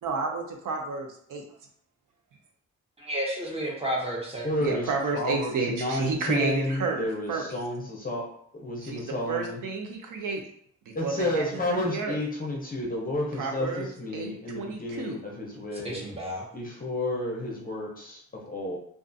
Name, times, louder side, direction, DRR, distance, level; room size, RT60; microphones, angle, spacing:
voice 1, 0.0-1.4 4.6-7.5 8.8-9.0 9.3-10.5 10.9-12.2 13.3-13.9 14.1-15.2, right 4 dB, 90° right, 2 dB, 0.6 m, -31 dB
voice 2, 3.0-4.5 15.7-16.5, right 1 dB, 20° right, -4 dB, 0.8 m, -31 dB
voice 3, 4.4-8.3 8.5-9.6 10.9-16.0 16.5-18.8, left 1 dB, 30° left, -2 dB, 0.6 m, -31 dB
2.4 x 2.4 x 2.5 m, 0.63 s
wide cardioid pair, 135°, 31 cm